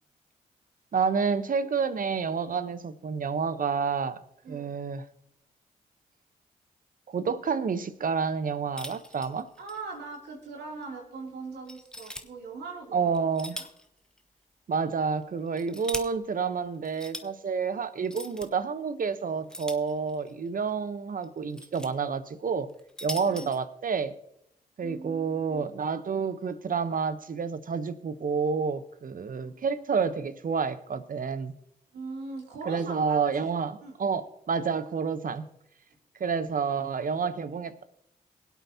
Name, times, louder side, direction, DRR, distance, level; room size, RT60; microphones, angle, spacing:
voice 1, 0.9-4.2 4.5-5.0 7.1-9.5 12.9-13.6 14.7-22.7 23.0-24.1 24.8-31.5 32.7-35.4 36.2-37.8, right 5 dB, 55° right, 0.9 m, -29 dB
voice 2, 4.4-4.7 9.6-13.1 13.5-13.7 23.3-23.5 24.8-25.7 29.3-29.6 31.9-33.5 33.8-33.9, right 3 dB, 80° right, 2.9 m, -41 dB
sound 1, 8.8-9.8 10.1-10.2 10.8-10.9 11.7-12.2 13.1-13.9 14.2-14.3 15.2-16.0 16.8-17.3 18.0-18.5 19.5-20.3 21.2-21.9 22.7-23.6, left 1 dB, 5° left, 1.1 m, -40 dB
23.0 x 8.3 x 2.8 m
supercardioid pair, 40°, 17 cm